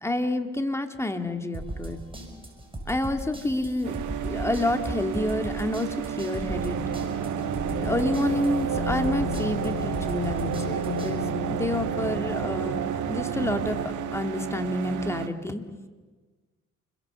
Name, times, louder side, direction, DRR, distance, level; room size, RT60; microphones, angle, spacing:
voice 1, 0.0-2.0 2.9-6.8 7.7-13.8 14.1-15.6, left 1 dB, 10° left, 6 dB, 2.2 m, -29 dB
sound 1, 1.5-11.1, right 2 dB, 15° right, 6.1 m, -38 dB
sound 2, 3.8-15.3, right 9 dB, 80° right, 1.6 m, -33 dB
sound 3, 6.5-13.9, right 4 dB, 65° right, 2.5 m, -31 dB
29.0 x 22.0 x 6.9 m, 1.4 s
cardioid pair, 90°, 30 cm